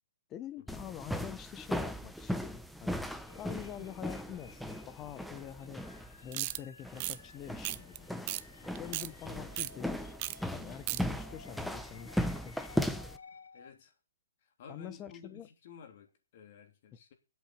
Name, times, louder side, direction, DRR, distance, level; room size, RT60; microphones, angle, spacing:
voice 1, 0.3-3.0 3.4-5.8 6.2-8.2 8.8-10.0 10.5-13.1 14.7-15.5, left 10 dB, 25° left, 1.1 m, -46 dB
sound 1, 0.7-13.2, equal, ahead, 1.0 m, -38 dB
sound 2, 3.3-13.7, left 5 dB, 80° left, 1.2 m, -56 dB
sound 3, 6.3-6.6 7.0-7.2 7.6-8.0 8.3-8.4 8.7-9.1 9.6-9.7 10.2-10.4 10.6-11.0, right 18 dB, 40° right, 0.7 m, -35 dB
voice 2, 13.5-13.9 14.4-17.1, left 6 dB, 55° left, 3.4 m, -53 dB
8.7 x 8.2 x 8.3 m
hypercardioid pair, 130°, 0 cm